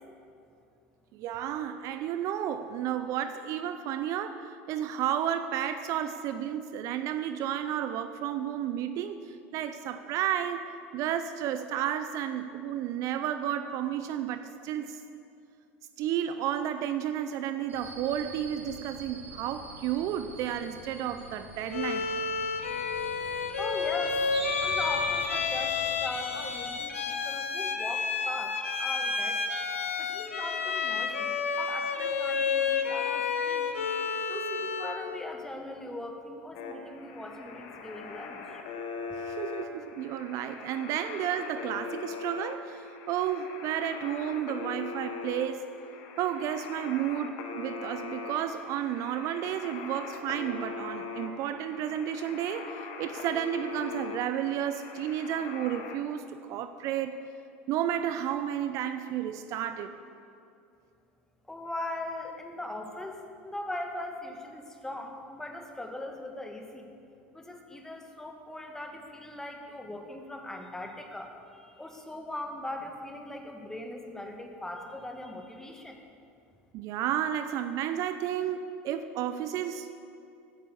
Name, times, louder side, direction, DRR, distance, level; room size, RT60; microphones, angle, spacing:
voice 1, 1.1-10.6 10.9-15.0 16.0-22.1 39.2-45.6 46.2-57.2 57.7-59.9 76.7-78.6 78.8-79.9, right 10 dB, 50° right, 10 dB, 0.6 m, -32 dB
sound 1, 17.7-26.7, right 1 dB, 80° right, 2.8 m, -43 dB
Bowed string instrument, 21.7-35.1, left 5 dB, 80° left, 0.9 m, -30 dB
voice 2, 23.6-24.3 24.6-29.4 30.0-31.3 31.6-33.7 34.3-38.6 61.5-66.9 67.3-76.0, left 1 dB, 5° left, 3 dB, 2.0 m, -40 dB
sound 2, 36.5-56.0, left 5 dB, 55° left, 1.8 m, -41 dB
15.5 x 9.2 x 6.7 m, 2.6 s
hypercardioid pair, 75°, 7 cm